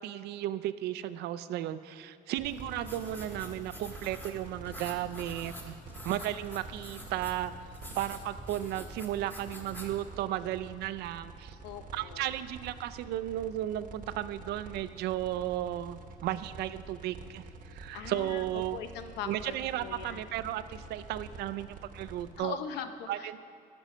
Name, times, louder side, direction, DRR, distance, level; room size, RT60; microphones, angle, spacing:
voice 1, 0.0-5.8 6.0-7.5 8.0-11.6 11.9-18.8 19.2-22.6 23.1-23.4, right 13 dB, 75° right, 13 dB, 0.4 m, -34 dB
sound 1, 2.4-10.0, equal, 10° left, 1.3 m, -47 dB
sound 2, 2.4-22.4, right 3 dB, 55° right, 0.9 m, -48 dB
voice 2, 11.6-12.2 17.9-18.4 18.7-19.5 19.8-20.3 22.4-23.4, left 8 dB, 85° left, 9 dB, 0.6 m, -40 dB
10.5 x 6.1 x 5.5 m, 2.2 s
cardioid pair, 110°, 17 cm